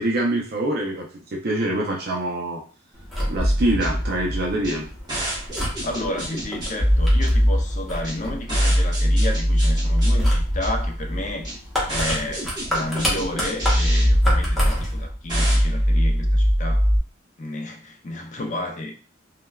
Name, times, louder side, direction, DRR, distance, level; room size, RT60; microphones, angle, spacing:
voice 1, 0.0-2.6 3.3-4.9, right 1 dB, 50° right, 0.5 m, -25 dB
sound 1, 2.9-15.1, equal, ahead, 0.7 m, -31 dB
sound 2, 3.4-17.0, equal, 20° right, 1.3 m, -21 dB
voice 2, 5.8-11.5 11.9-16.9 17.4-18.9, left 1 dB, 40° left, 0.4 m, -31 dB
3.2 x 2.2 x 2.2 m
head